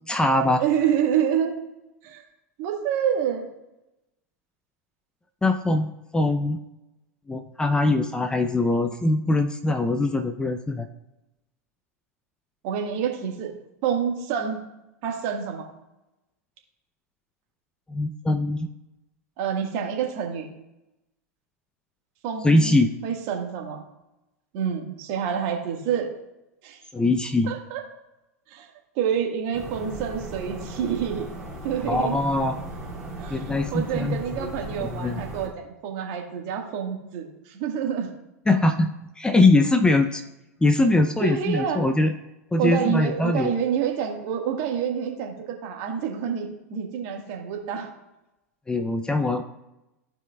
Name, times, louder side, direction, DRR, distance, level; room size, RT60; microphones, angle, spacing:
voice 1, 0.1-0.6 5.4-6.6 7.3-10.9 17.9-18.7 22.4-22.9 26.9-27.5 31.9-32.6 33.3-34.2 34.8-35.2 38.5-38.9 39.2-40.2 40.6-42.1 42.5-43.5 48.7-49.4, left 2 dB, 10° left, 8 dB, 0.5 m, -22 dB
voice 2, 0.6-1.5 2.0-2.2 2.6-3.5 12.6-13.5 13.8-14.6 15.0-15.7 19.4-20.5 22.2-22.8 23.0-23.8 24.5-26.1 26.6-26.8 27.5-27.8 28.5-31.3 31.6-32.1 33.2-38.1 41.2-41.8 42.6-47.9, right 8 dB, 50° right, 2 dB, 1.6 m, -27 dB
sound 1, 29.5-35.5, right 1 dB, 10° right, 2.5 m, -37 dB
14.5 x 4.9 x 2.3 m, 0.92 s
figure-of-eight pair, 90°, 9 cm